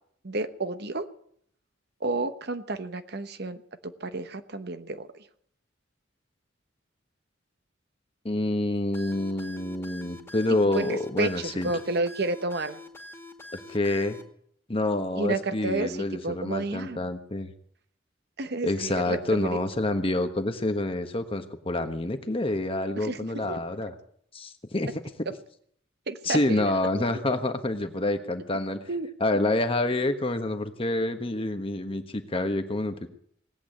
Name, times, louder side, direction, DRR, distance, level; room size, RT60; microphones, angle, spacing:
voice 1, 0.2-1.1 2.0-5.1 10.7-12.8 15.1-17.0 18.4-19.6 23.0-23.2 23.5-23.6 26.1-26.6 28.9-29.1, right 2 dB, 55° right, 10 dB, 1.1 m, -31 dB
voice 2, 8.2-11.7 13.7-14.2 14.7-17.5 18.6-23.9 24.3-24.9 26.2-28.8 29.2-33.1, left 2 dB, 30° left, 7 dB, 1.4 m, -27 dB
sound 1, 8.9-14.2, left 1 dB, 15° left, 2.2 m, -45 dB
18.5 x 8.7 x 8.7 m, 0.66 s
head